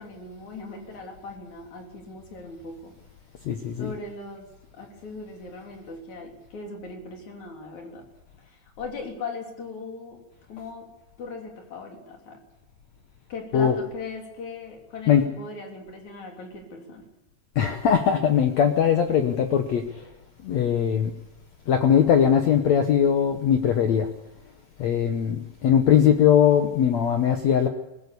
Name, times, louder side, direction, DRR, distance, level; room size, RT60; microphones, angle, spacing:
voice 1, 0.0-2.9 3.8-4.5 4.7-8.0 8.4-10.2 10.5-10.9 11.2-12.4 13.3-17.1, left 3 dB, 45° left, 2 dB, 4.6 m, -39 dB
voice 2, 3.4-3.9 13.5-13.7 15.1-15.2 17.5-19.8 20.4-21.1 21.7-24.1 24.8-27.7, left 8 dB, 85° left, 5 dB, 1.5 m, -20 dB
21.0 x 16.0 x 8.4 m, 0.95 s
omnidirectional pair, 4.8 m